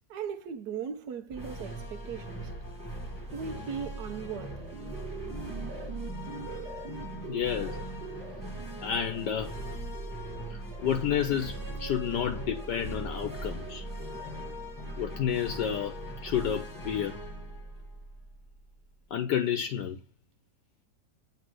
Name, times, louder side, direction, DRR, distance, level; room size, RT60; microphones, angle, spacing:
voice 1, 0.1-2.5 3.3-4.8, right 7 dB, 65° right, 1.4 m, -38 dB
sound 1, 1.3-18.7, right 1 dB, 10° left, 1.6 m, -40 dB
sound 2, 4.2-14.7, right 6 dB, 85° right, 1.6 m, -45 dB
voice 2, 7.3-7.8 8.8-9.5 10.5-13.8 15.0-17.2 19.1-20.0, left 9 dB, 70° left, 1.4 m, -30 dB
8.0 x 3.4 x 6.3 m
omnidirectional pair, 2.0 m